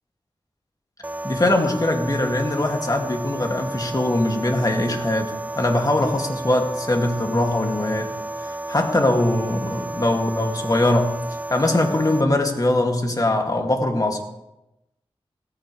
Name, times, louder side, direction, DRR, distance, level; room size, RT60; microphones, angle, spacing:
sound 1, 1.0-12.2, right 1 dB, 15° right, 0.6 m, -32 dB
voice 1, 1.2-8.1 8.4-11.1 11.5-14.2, left 1 dB, 35° left, 3 dB, 2.3 m, -22 dB
17.5 x 15.0 x 3.3 m, 0.93 s
cardioid pair, 50°, 10 cm